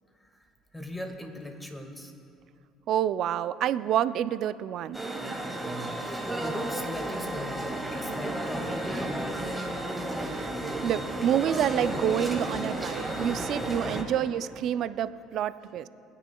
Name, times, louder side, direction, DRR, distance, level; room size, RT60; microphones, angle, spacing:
voice 1, 0.7-2.1 6.1-9.6, left 1 dB, 10° left, 3 dB, 1.8 m, -39 dB
voice 2, 2.9-5.0 10.2-10.5 10.8-15.9, right 10 dB, 60° right, 15 dB, 0.3 m, -28 dB
sound 1, 4.9-14.0, right 1 dB, 10° right, 2.0 m, -32 dB
20.5 x 9.9 x 2.3 m, 2.6 s
hypercardioid pair, 75°, 0 cm